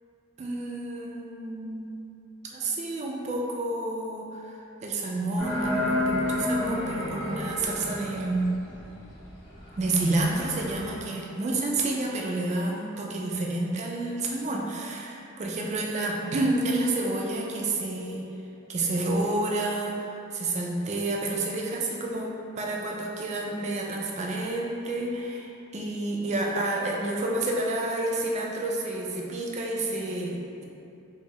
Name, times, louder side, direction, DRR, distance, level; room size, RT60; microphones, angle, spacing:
voice 1, 0.4-2.1 2.4-8.5 9.8-18.3 18.7-22.3 22.6-30.6, right 2 dB, 35° right, -1 dB, 0.3 m, -29 dB
sound 1, 5.4-11.0, left 1 dB, 80° left, 1.1 m, -31 dB
4.4 x 2.0 x 2.9 m, 2.7 s
head